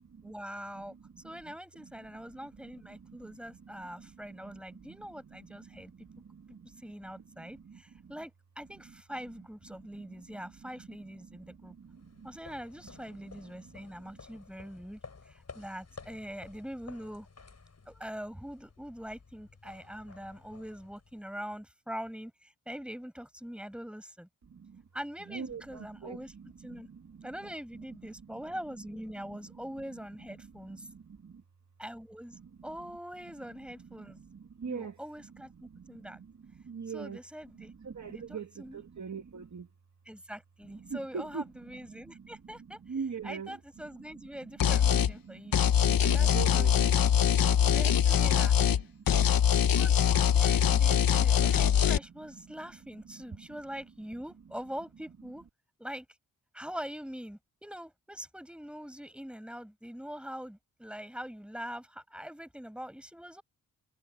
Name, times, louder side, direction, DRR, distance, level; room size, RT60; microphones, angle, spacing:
voice 1, 0.2-1.0 1.2-5.9 6.8-11.8 12.2-17.3 17.9-24.3 24.9-26.3 26.6-26.9 27.2-30.9 31.8-34.2 34.7-36.2 36.9-37.7 38.1-38.8 40.1-42.8 43.2-45.6 46.0-46.8 47.6-48.6 49.8-49.9 50.3-55.5 55.8-56.1 56.5-63.4, equal, 5° right, 7.2 m, -43 dB
voice 2, 0.7-1.1 1.9-2.0 2.6-3.3 3.7-8.1 9.7-10.3 10.6-10.9 11.3-12.4 13.3-14.1 24.5-24.8 25.3-27.3 28.3-28.4 29.2-29.4 30.3-31.4 32.3-32.5 33.8-35.0 35.5-37.2 37.5-39.7 40.8-41.4 41.7-42.3 42.5-43.6 44.0-47.9 48.6-49.2 50.4-50.6 51.1-51.8 52.3-52.5 53.1-53.5, right 6 dB, 55° right, 2.4 m, -45 dB
sound 1, 11.8-21.5, left 4 dB, 50° left, 7.6 m, -53 dB
sound 2, 44.6-45.1 45.5-48.8 49.1-52.0, left 9 dB, 80° left, 1.1 m, -23 dB
cardioid pair, 70°, 34 cm